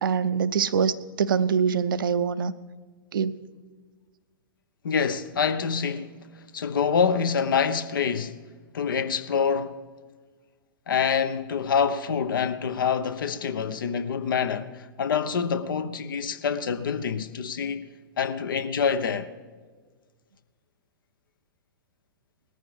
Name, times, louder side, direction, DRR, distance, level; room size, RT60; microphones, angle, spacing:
voice 1, 0.0-2.5 3.1-3.4, right 6 dB, 65° right, 0.6 m, -24 dB
voice 2, 4.8-8.4 8.7-9.8 10.9-17.9 18.2-19.3, left 6 dB, 65° left, 0.9 m, -26 dB
20.0 x 14.0 x 3.3 m
figure-of-eight pair, 105°, 12 cm